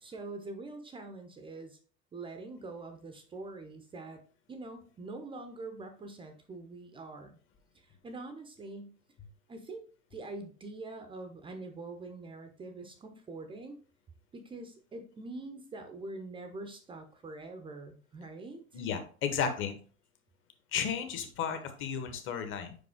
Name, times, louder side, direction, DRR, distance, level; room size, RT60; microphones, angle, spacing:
voice 1, 0.0-1.8 2.1-4.2 4.5-7.4 7.7-9.0 9.5-9.9 10.1-13.8 14.3-18.8, right 2 dB, 10° right, 7 dB, 0.6 m, -44 dB
voice 2, 18.7-19.8 20.7-22.7, left 7 dB, 30° left, 8 dB, 1.1 m, -33 dB
5.4 x 5.2 x 3.6 m, 0.41 s
figure-of-eight pair, 85°, 42 cm